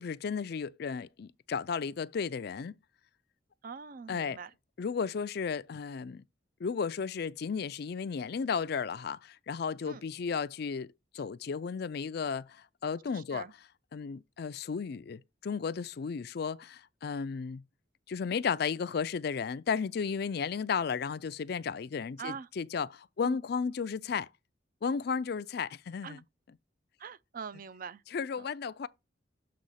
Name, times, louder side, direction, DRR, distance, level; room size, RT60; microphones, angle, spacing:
voice 1, 0.0-2.7 4.1-4.4 4.8-6.2 6.6-17.6 18.1-24.3 24.8-26.6 28.1-28.9, left 6 dB, 60° left, 0.4 m, -34 dB
voice 2, 3.6-4.5 9.9-10.0 13.3-13.5 22.2-22.5 23.2-23.4 26.0-26.2 27.0-28.0, right 6 dB, 50° right, 0.4 m, -42 dB
7.5 x 3.0 x 5.6 m
head